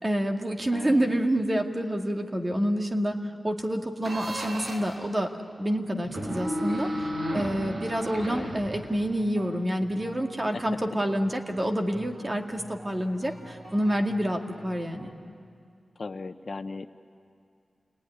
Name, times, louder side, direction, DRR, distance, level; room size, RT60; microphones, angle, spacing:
voice 1, 0.0-3.2 3.4-5.3 5.6-7.1 7.3-15.1, equal, 30° right, 3 dB, 2.1 m, -28 dB
voice 2, 0.7-1.2 8.1-8.5 10.5-10.6 16.0-16.9, left 3 dB, 55° left, 8 dB, 0.8 m, -37 dB
sound 1, 4.0-5.0 6.0-9.1, equal, 70° right, 5.1 m, -33 dB
sound 2, 7.6-15.1, equal, 50° right, 6.8 m, -49 dB
29.0 x 19.5 x 10.0 m, 2.3 s
wide cardioid pair, 70°, 0 cm